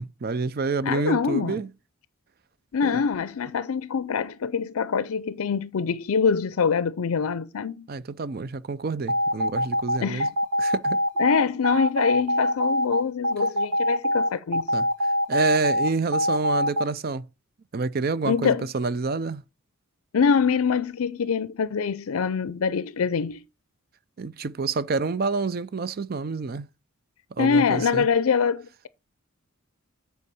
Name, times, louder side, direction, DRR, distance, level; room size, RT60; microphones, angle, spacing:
voice 1, 0.0-1.7 2.8-3.0 7.9-10.3 10.6-11.0 14.7-14.9 15.3-17.3 17.7-19.4 24.2-26.7 27.4-28.1, right 4 dB, 45° right, 0.5 m, -28 dB
voice 2, 0.8-1.7 2.7-7.9 10.0-10.3 11.2-14.7 18.3-18.7 20.1-23.4 27.4-28.9, left 6 dB, 80° left, 0.5 m, -24 dB
sound 1, 9.1-16.8, left 1 dB, 90° right, 1.3 m, -23 dB
8.3 x 4.6 x 6.8 m
head